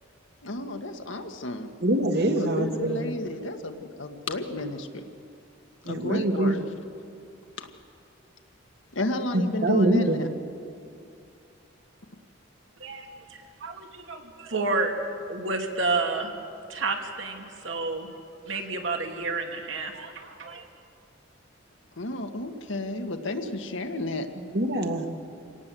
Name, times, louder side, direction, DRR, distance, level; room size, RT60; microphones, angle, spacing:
voice 1, 0.4-1.7 2.3-5.0 5.9-6.6 7.6-7.7 8.9-10.3 22.0-24.3, left 2 dB, 70° left, 6 dB, 1.6 m, -32 dB
voice 2, 1.8-3.0 5.9-6.6 9.3-10.2 24.5-25.1, right 1 dB, 55° right, 5 dB, 1.9 m, -24 dB
voice 3, 12.8-15.0 15.3-16.3 16.7-18.1 18.5-20.6, right 3 dB, 70° right, 3 dB, 2.5 m, -30 dB
26.5 x 18.0 x 7.6 m, 2.6 s
head